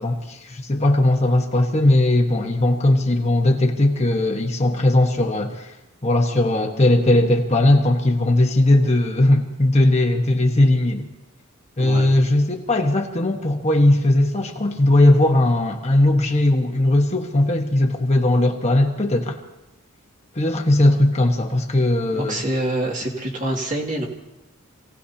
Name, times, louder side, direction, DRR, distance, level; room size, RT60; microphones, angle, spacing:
voice 1, 0.0-5.7 6.0-11.1 11.8-19.4 20.3-22.4, left 1 dB, 30° left, 2 dB, 1.3 m, -18 dB
voice 2, 11.8-12.2 22.1-24.0, right 1 dB, 35° right, -1 dB, 2.3 m, -26 dB
27.5 x 17.5 x 2.9 m, 1.0 s
head